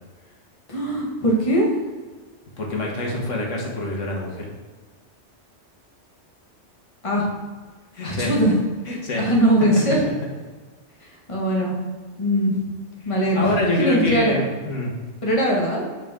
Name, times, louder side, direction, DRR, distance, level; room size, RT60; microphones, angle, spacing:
voice 1, 0.7-1.7 7.0-7.3 8.0-8.5 8.8-10.0 11.3-11.7 12.2-12.5 13.0-13.5 13.8-14.4 15.2-15.8, right 1 dB, 25° left, -3 dB, 1.6 m, -20 dB
voice 2, 2.6-4.5 7.9-8.3 8.9-9.2 13.0-14.9, left 2 dB, 90° left, -2 dB, 1.8 m, -26 dB
8.3 x 5.3 x 3.7 m, 1.3 s
omnidirectional pair, 1.2 m